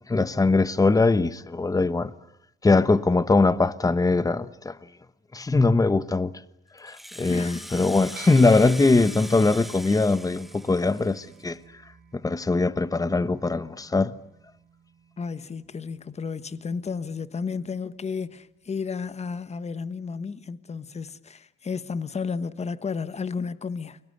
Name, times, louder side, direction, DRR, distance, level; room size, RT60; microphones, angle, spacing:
voice 1, 0.1-2.1 2.6-4.8 5.3-6.3 6.8-11.6 12.2-14.1, left 3 dB, 20° left, 1.1 m, -21 dB
Rattle (instrument), 6.8-11.5, equal, ahead, 1.1 m, -41 dB
voice 2, 7.3-7.7 15.2-24.0, left 5 dB, 35° left, 1.4 m, -32 dB
sound 1, 8.2-17.8, right 6 dB, 55° right, 3.9 m, -50 dB
29.5 x 23.0 x 8.0 m
cardioid pair, 90°, 20 cm